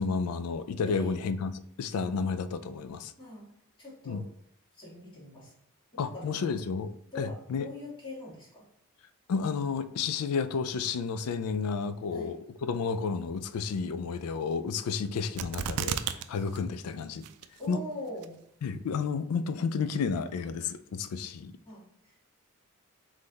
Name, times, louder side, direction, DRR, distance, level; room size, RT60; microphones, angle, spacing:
voice 1, 0.0-3.1 4.1-4.2 6.0-7.7 9.3-17.2 17.7-17.8 18.6-21.5, left 5 dB, 80° left, 13 dB, 0.3 m, -31 dB
voice 2, 0.8-1.3 3.2-3.5 3.8-4.3 4.7-5.5 5.9-6.4 7.1-8.7 12.1-12.4 17.6-18.4 21.6-22.3, left 1 dB, 25° left, -7 dB, 1.8 m, -42 dB
sound 1, 15.4-16.2 16.5-16.6 17.2-17.7 18.2-18.3, right 8 dB, 90° right, 0.3 m, -32 dB
3.8 x 3.2 x 3.9 m, 0.72 s
head